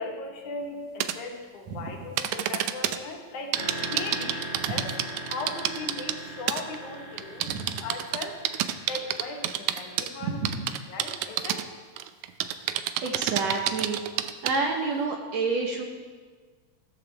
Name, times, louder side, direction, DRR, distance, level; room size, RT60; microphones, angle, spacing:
voice 1, 0.0-5.0 5.3-8.4 8.9-10.5 10.9-11.7, left 3 dB, 65° left, 2 dB, 2.4 m, -38 dB
sound 1, 1.0-1.1 2.2-3.0 3.5-6.2 6.5-6.8 7.2-10.1 10.4-11.6 12.0-14.6, right 12 dB, 85° right, 1.7 m, -28 dB
sound 2, 3.5-11.3, equal, 50° right, 3.6 m, -40 dB
voice 2, 7.4-7.8 10.3-10.7 13.0-14.0 14.4-15.8, right 4 dB, 65° right, 1 dB, 1.9 m, -29 dB
15.0 x 14.0 x 3.4 m, 1.5 s
omnidirectional pair, 4.0 m